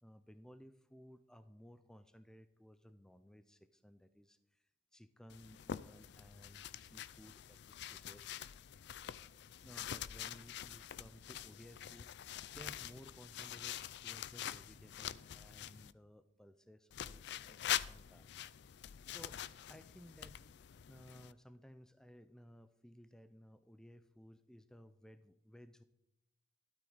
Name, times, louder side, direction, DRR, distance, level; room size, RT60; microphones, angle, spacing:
voice 1, 0.0-4.6 4.9-8.3 9.1-12.2 12.5-18.3 19.1-19.4 19.7-20.5 20.9-25.8, equal, 5° left, 11 dB, 0.5 m, -59 dB
sound 1, 5.3-15.9 16.9-21.3, left 10 dB, 60° left, 0.4 m, -45 dB
12.5 x 12.0 x 4.0 m, 0.86 s
head